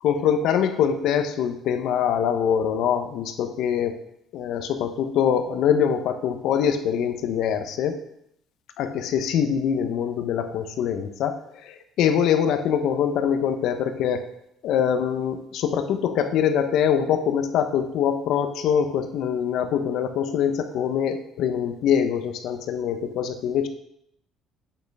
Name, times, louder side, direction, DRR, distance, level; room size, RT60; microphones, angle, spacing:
voice 1, 0.0-3.9 4.3-8.0 8.8-11.3 12.0-14.2 14.6-23.7, left 8 dB, 70° left, 7 dB, 0.9 m, -23 dB
7.9 x 6.5 x 3.5 m, 0.74 s
cardioid pair, 110°, 0 cm